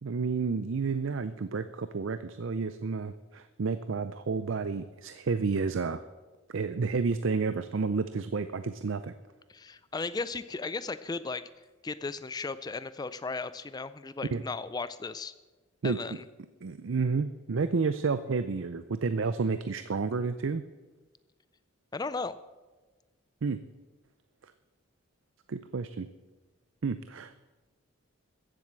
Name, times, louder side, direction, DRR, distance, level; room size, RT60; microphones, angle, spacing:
voice 1, 0.0-6.0 6.5-9.1 14.3-14.4 15.8-16.2 16.6-20.6 23.4-23.6 25.5-26.1 26.8-27.4, right 4 dB, 65° right, 12 dB, 0.5 m, -30 dB
voice 2, 9.5-11.4 11.8-15.3 15.8-16.2 21.9-22.4, left 4 dB, 20° left, 14 dB, 0.3 m, -36 dB
14.5 x 7.7 x 7.4 m, 1.3 s
head